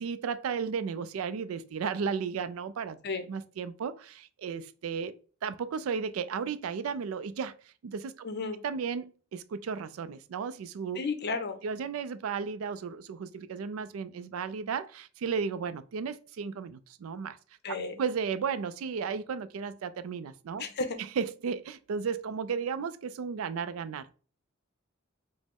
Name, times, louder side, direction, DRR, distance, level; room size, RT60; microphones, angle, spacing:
voice 1, 0.0-3.0 3.3-5.1 5.4-8.3 8.6-11.0 11.6-17.4 17.7-20.6 21.0-24.1, right 6 dB, 85° right, 0.4 m, -34 dB
voice 2, 8.2-8.6 11.0-11.6 17.6-17.9 20.6-21.0, left 4 dB, 50° left, 0.6 m, -33 dB
5.0 x 2.1 x 3.6 m
head